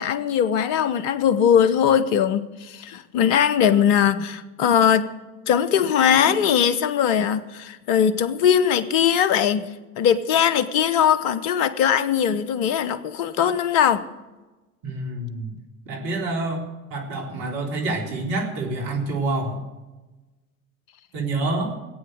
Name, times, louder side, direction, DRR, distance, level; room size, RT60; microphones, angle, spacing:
voice 1, 0.0-5.1 5.5-14.1, left 8 dB, 65° left, 14 dB, 1.0 m, -20 dB
voice 2, 14.8-15.5 15.9-19.6 21.1-21.8, right 2 dB, 60° right, 2 dB, 3.6 m, -27 dB
16.0 x 8.7 x 8.0 m, 1.1 s
figure-of-eight pair, 65°, 42 cm